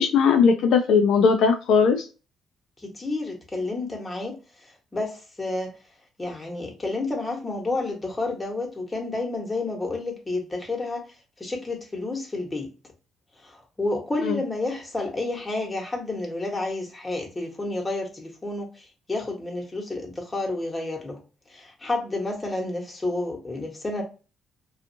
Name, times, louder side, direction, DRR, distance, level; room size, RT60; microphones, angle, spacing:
voice 1, 0.0-2.1 14.2-14.4, left 5 dB, 80° left, 0.4 m, -19 dB
voice 2, 2.8-4.4 4.9-5.7 6.2-11.0 11.4-12.7 13.4-21.2 21.5-24.0, left 2 dB, 20° left, 1.1 m, -30 dB
2.5 x 2.4 x 2.7 m
cardioid pair, 90°, 0 cm